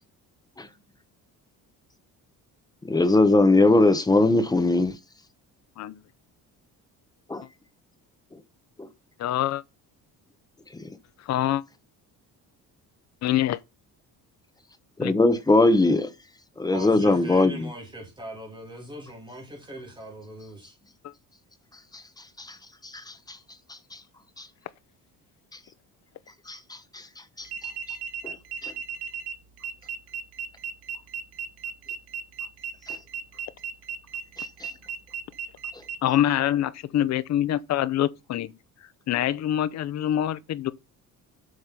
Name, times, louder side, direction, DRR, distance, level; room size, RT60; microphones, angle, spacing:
voice 1, 2.8-4.9 7.3-7.4 8.8-8.9 10.7-10.8 15.0-16.1 16.6-17.7 21.9-22.0 22.4-22.6 22.8-23.4 23.7-23.8 24.4-24.5 26.5-27.1 27.4-27.5 28.2-28.4 28.6-28.7 32.9-33.0 34.6-34.7, left 2 dB, 10° left, 0.8 m, -21 dB
voice 2, 9.2-9.6 11.2-11.6 13.2-13.6 15.0-15.2 21.0-21.1 36.0-40.7, left 12 dB, 45° left, 0.7 m, -25 dB
voice 3, 16.7-20.7, right 1 dB, 15° right, 2.9 m, -40 dB
sound 1, 27.4-36.0, right 7 dB, 85° right, 1.8 m, -35 dB
8.1 x 5.4 x 5.8 m
cardioid pair, 175°, 36 cm